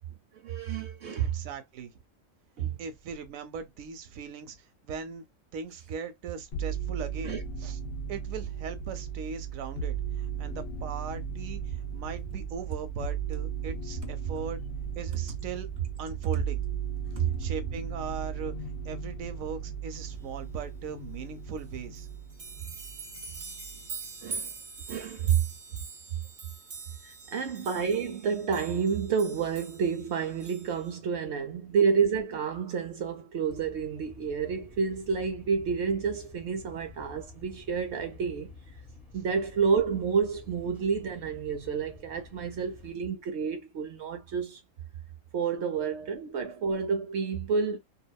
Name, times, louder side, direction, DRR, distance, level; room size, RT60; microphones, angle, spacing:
voice 1, 0.3-1.4 2.6-2.8 7.2-7.4 17.2-17.3 24.2-24.5 24.9-25.5 27.0-38.5 39.1-44.6 45.3-47.8, right 6 dB, 65° right, 0.8 m, -29 dB
voice 2, 1.2-1.9 2.8-4.6 4.8-5.3 5.5-7.8 8.1-14.6 15.0-15.7 16.0-16.6 17.4-18.5 18.8-22.1 23.7-23.8, right 6 dB, 85° right, 1.0 m, -39 dB
sound 1, 6.5-23.9 24.3-25.1, right 6 dB, 60° left, 0.8 m, -36 dB
sound 2, 21.6-21.7 21.9-30.9, right 5 dB, 40° right, 0.9 m, -43 dB
sound 3, 33.5-42.9, left 3 dB, ahead, 0.9 m, -50 dB
2.9 x 2.3 x 2.2 m
omnidirectional pair, 1.4 m